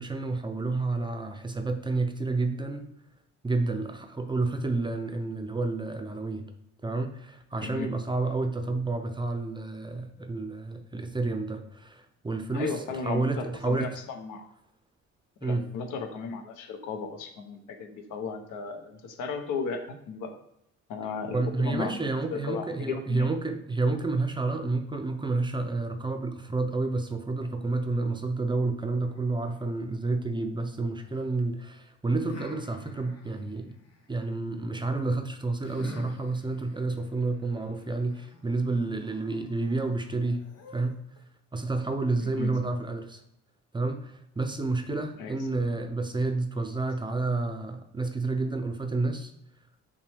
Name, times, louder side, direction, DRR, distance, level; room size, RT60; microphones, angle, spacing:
voice 1, 0.0-2.9 3.4-6.5 6.8-12.7 13.0-13.9 15.4-15.7 21.3-33.7 34.1-40.4 40.7-41.0 41.5-43.2 43.7-49.3, right 3 dB, 15° right, 6 dB, 0.4 m, -30 dB
voice 2, 7.6-7.9 12.5-14.5 15.4-20.3 20.9-23.3 42.2-42.5 45.2-45.3, left 5 dB, 85° left, 5 dB, 0.8 m, -35 dB
sound 1, 29.0-31.2 32.3-34.3 35.6-41.2, left 2 dB, 55° left, 1.0 m, -49 dB
5.8 x 2.2 x 3.3 m, 0.76 s
cardioid pair, 90°, 30 cm